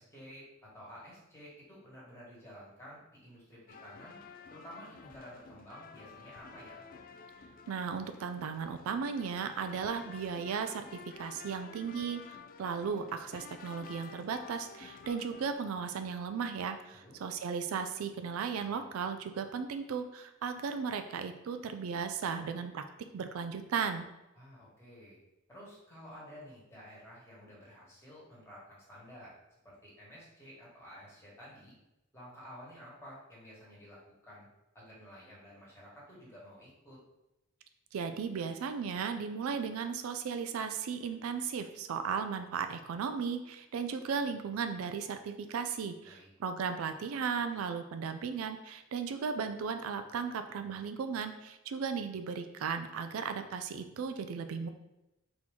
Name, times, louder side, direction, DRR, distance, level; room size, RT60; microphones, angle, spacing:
voice 1, 0.0-4.2 4.5-6.8 16.9-17.2 24.3-25.2 25.5-29.4 29.6-31.7 32.1-34.5 34.7-37.0 46.0-46.3, equal, 10° left, -7 dB, 1.5 m, -52 dB
sound 1, 3.7-15.6, left 5 dB, 45° left, 0.3 m, -51 dB
voice 2, 7.7-22.8 23.1-24.1 37.9-54.7, right 6 dB, 80° right, 8 dB, 0.3 m, -36 dB
4.2 x 2.9 x 3.5 m, 0.93 s
head